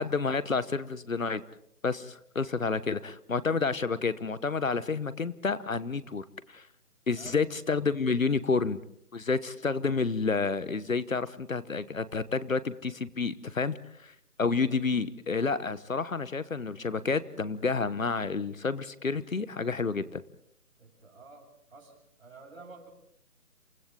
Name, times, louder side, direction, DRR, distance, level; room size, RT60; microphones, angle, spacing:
voice 1, 0.0-1.4 1.8-6.7 7.1-8.8 9.1-14.1 14.4-20.2, left 4 dB, 60° left, 16 dB, 1.1 m, -30 dB
voice 2, 20.8-22.9, right 3 dB, 40° right, -2 dB, 7.6 m, -50 dB
29.5 x 28.5 x 3.8 m, 0.71 s
hypercardioid pair, 180°, 46 cm